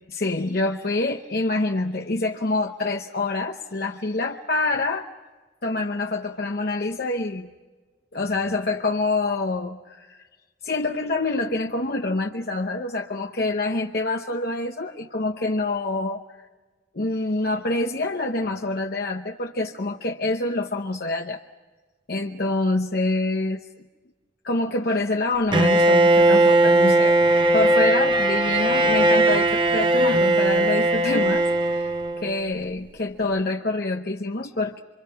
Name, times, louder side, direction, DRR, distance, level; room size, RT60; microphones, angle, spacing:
voice 1, 0.2-5.1 5.6-7.5 8.1-10.3 10.6-16.2 16.9-21.4 22.1-23.6 24.4-27.2 27.5-34.8, left 2 dB, 50° left, 3 dB, 0.9 m, -26 dB
Bowed string instrument, 25.5-32.4, right 2 dB, 25° right, 1.0 m, -19 dB
28.0 x 25.5 x 5.8 m, 1.3 s
head